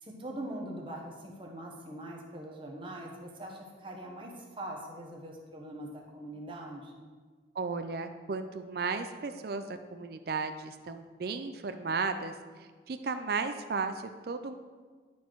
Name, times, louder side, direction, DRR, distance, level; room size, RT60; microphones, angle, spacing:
voice 1, 0.0-7.1, right 1 dB, 30° right, 0 dB, 1.1 m, -42 dB
voice 2, 7.5-12.3 12.9-14.5, right 4 dB, 55° right, 8 dB, 0.4 m, -34 dB
11.5 x 4.3 x 4.6 m, 1.5 s
head